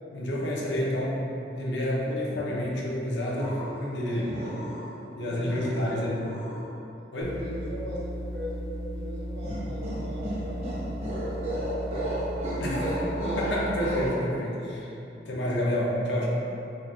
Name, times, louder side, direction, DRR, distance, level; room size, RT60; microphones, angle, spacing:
voice 1, 0.1-1.3 1.5-4.3 5.2-6.2 7.1-7.4 12.6-13.0 13.4-14.9 15.3-16.3, left 1 dB, 80° left, -4 dB, 0.7 m, -29 dB
sound 1, 3.3-3.9 4.2-5.0 5.5-6.6 9.4-14.1, right 1 dB, 35° right, 0.8 m, -33 dB
voice 2, 3.9-4.6 5.2-6.2 7.3-10.7 11.2-12.7 15.1-15.4, equal, 75° right, -7 dB, 1.0 m, -39 dB
sound 2, 7.2-14.1, equal, ahead, 1.2 m, -36 dB
4.4 x 2.6 x 2.8 m, 2.8 s
head